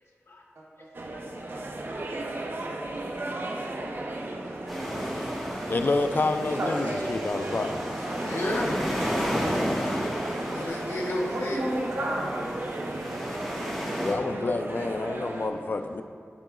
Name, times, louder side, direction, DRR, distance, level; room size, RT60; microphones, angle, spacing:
voice 1, 0.6-0.9 1.5-1.6 4.4-4.8 6.6-7.5 11.3-13.6, right 1 dB, 85° right, -4 dB, 1.2 m, -34 dB
sound 1, 0.9-15.5, right 2 dB, 50° right, 0.5 m, -35 dB
voice 2, 1.1-1.7 3.9-4.2 8.3-8.9 10.4-11.6, left 1 dB, 70° left, -2 dB, 0.7 m, -33 dB
sound 2, 4.7-14.1, equal, ahead, 1.3 m, -33 dB
voice 3, 5.7-7.8 14.0-16.0, left 3 dB, 45° left, 8 dB, 0.3 m, -28 dB
10.5 x 3.8 x 2.4 m, 2.3 s
wide cardioid pair, 90°, 4 cm